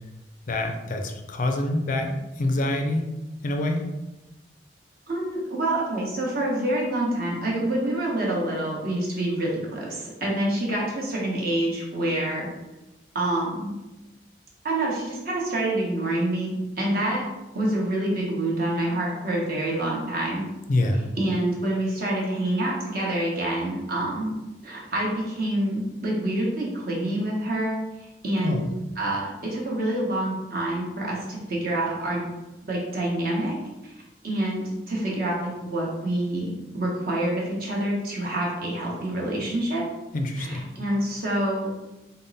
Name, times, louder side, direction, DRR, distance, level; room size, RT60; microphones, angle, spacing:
voice 1, 0.5-3.1 3.4-3.8 20.7-21.1 28.4-28.7 40.1-40.7, left 1 dB, 50° left, 4 dB, 0.4 m, -26 dB
voice 2, 5.1-12.5 13.1-13.7 14.6-17.2 17.5-20.5 21.2-24.3 24.6-27.8 28.2-28.6 29.0-32.2 32.7-33.5 33.8-33.9 34.2-39.8 40.4-41.7, right 1 dB, 55° right, -4 dB, 1.0 m, -27 dB
3.5 x 2.0 x 4.0 m, 1.0 s
head